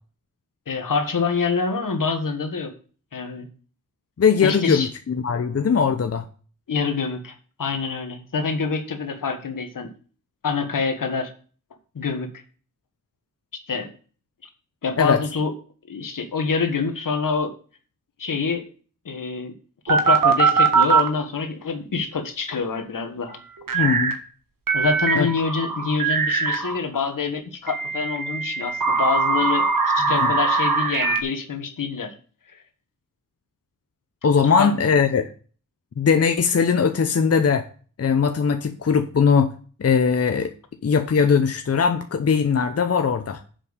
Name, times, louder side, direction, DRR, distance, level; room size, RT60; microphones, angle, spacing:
voice 1, 0.7-2.7 3.1-3.5 4.4-4.9 6.7-9.9 10.4-11.3 12.0-12.3 13.7-13.9 14.8-15.5 15.9-17.5 18.2-18.6 19.1-19.5 19.9-23.4 23.7-23.8 24.7-32.1 34.6-34.7, left 5 dB, 75° left, 7 dB, 1.6 m, -26 dB
voice 2, 4.2-6.2 15.0-15.2 23.7-24.1 25.2-25.3 30.0-30.3 34.2-35.3 36.0-37.7 38.0-39.5 39.8-40.5 40.8-43.4, left 6 dB, 45° left, 7 dB, 0.8 m, -20 dB
sound 1, 19.9-21.1 23.7-24.2 24.7-26.8 27.7-31.2, right 5 dB, 75° right, 1.6 m, -21 dB
7.4 x 5.4 x 6.5 m, 0.40 s
wide cardioid pair, 95°, 33 cm